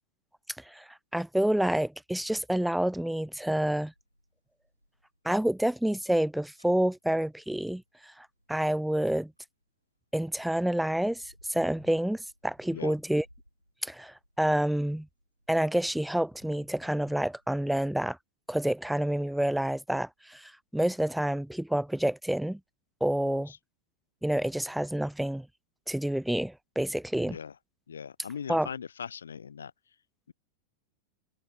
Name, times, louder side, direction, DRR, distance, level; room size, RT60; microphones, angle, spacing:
voice 1, 0.7-3.9 5.2-9.3 10.1-13.2 13.8-15.1 15.5-18.2 18.5-22.6 23.0-23.5 24.2-25.5 25.9-27.4 28.5-28.7, right 1 dB, ahead, 0.4 m, -28 dB
sound 1, 4.0-9.6 10.1-18.1, equal, 90° left, 3.9 m, -63 dB
voice 2, 23.3-23.6 27.2-27.6 27.9-30.0, left 7 dB, 70° left, 2.5 m, -40 dB
figure-of-eight pair, 90°, 0 cm